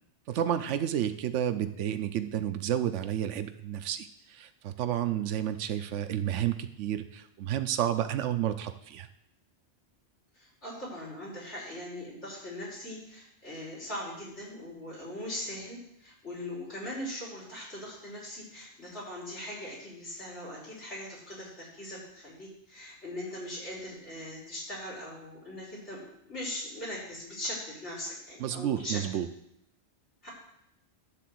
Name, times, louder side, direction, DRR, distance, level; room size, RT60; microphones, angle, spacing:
voice 1, 0.3-9.1 28.4-29.3, right 10 dB, 90° right, 9 dB, 0.9 m, -31 dB
voice 2, 10.3-26.0 26.3-29.0 30.2-30.3, left 1 dB, 75° left, -7 dB, 4.4 m, -40 dB
12.0 x 4.0 x 7.6 m, 0.78 s
omnidirectional pair, 1.2 m